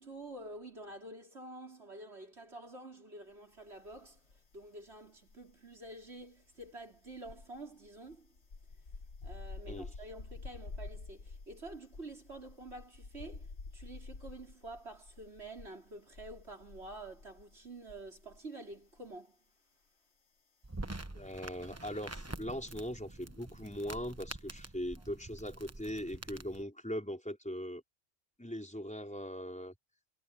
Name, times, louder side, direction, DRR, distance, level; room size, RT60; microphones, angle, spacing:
voice 1, 0.0-8.3 9.2-13.5 13.7-19.4, right 2 dB, 70° right, 4.9 m, -48 dB
sound 1, 3.8-4.7 4.9-18.5 18.7-19.0, left 3 dB, 75° left, 1.9 m, -49 dB
sound 2, 20.6-26.6, right 2 dB, 15° right, 0.9 m, -46 dB
voice 2, 21.1-27.8 28.4-29.7, equal, 5° left, 5.1 m, -40 dB
omnidirectional pair, 1.2 m